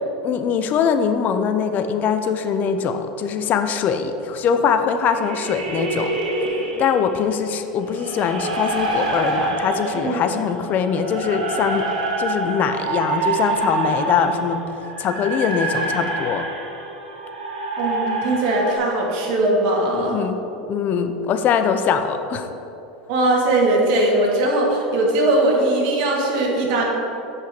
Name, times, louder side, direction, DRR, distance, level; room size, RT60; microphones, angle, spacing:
voice 1, 0.2-6.1 6.8-11.8 12.2-14.6 15.0-16.5 19.9-20.4 20.7-22.5, left 7 dB, 40° left, 8 dB, 0.7 m, -22 dB
sound 1, 5.1-7.2 7.9-18.7, right 2 dB, 80° right, 1.7 m, -26 dB
voice 2, 9.8-10.2 17.8-20.2 23.1-26.8, right 2 dB, 60° right, -2 dB, 2.3 m, -20 dB
8.0 x 5.5 x 6.9 m, 2.9 s
hypercardioid pair, 95°, 4 cm